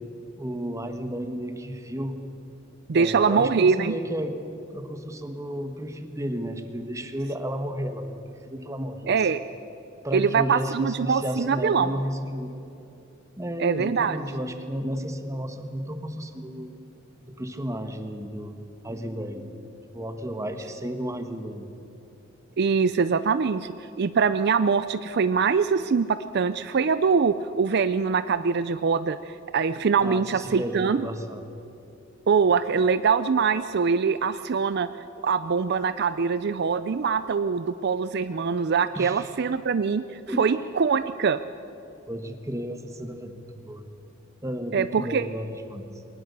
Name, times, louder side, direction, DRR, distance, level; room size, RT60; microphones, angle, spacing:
voice 1, 0.4-2.2 3.0-4.4 4.7-9.2 10.0-12.6 13.4-16.8 17.2-19.6 19.9-21.7 30.0-31.4 38.9-39.3 40.3-40.6 42.1-43.9 44.4-45.9, equal, 15° right, 7 dB, 1.3 m, -33 dB
voice 2, 2.9-3.9 9.1-9.4 10.1-11.9 13.6-14.2 22.6-31.1 32.3-34.9 35.2-41.4 44.7-45.3, right 5 dB, 55° right, 13 dB, 0.5 m, -23 dB
22.0 x 19.0 x 6.8 m, 2.9 s
head